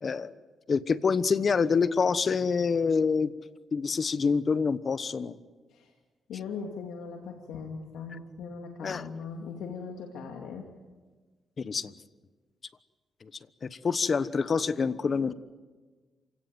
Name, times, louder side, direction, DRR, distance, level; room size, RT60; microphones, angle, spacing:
voice 1, 0.0-0.3 0.7-3.3 3.7-5.4 8.8-9.0 11.6-11.9 13.2-13.3 13.6-15.3, left 5 dB, 45° left, 15 dB, 1.1 m, -26 dB
voice 2, 6.3-10.7, left 5 dB, 85° left, 2 dB, 2.5 m, -39 dB
28.0 x 17.5 x 9.3 m, 1.3 s
cardioid pair, 75°, 0 cm